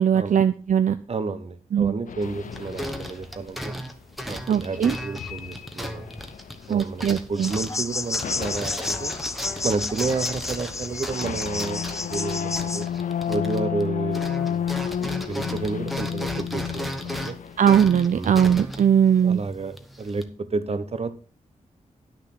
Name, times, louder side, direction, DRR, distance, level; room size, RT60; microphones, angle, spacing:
voice 1, 0.0-1.0 1.7-1.9 4.5-5.0 6.7-7.5 17.6-19.4, right 8 dB, 70° right, 11 dB, 0.5 m, -20 dB
voice 2, 1.1-3.7 4.3-6.1 6.7-9.2 9.6-12.9 13.3-14.7 15.0-17.4 18.1-18.4 19.2-21.1, right 4 dB, 50° right, 12 dB, 1.1 m, -31 dB
sound 1, 2.1-3.4 4.6-7.1 7.4-7.8 8.2-18.5, left 8 dB, 70° left, 0.6 m, -32 dB
sound 2, 2.2-13.9 14.1-20.2, equal, ahead, 1.2 m, -36 dB
sound 3, 7.4-12.9, left 3 dB, 20° left, 0.5 m, -31 dB
10.0 x 6.6 x 5.8 m, 0.36 s
wide cardioid pair, 110°, 14 cm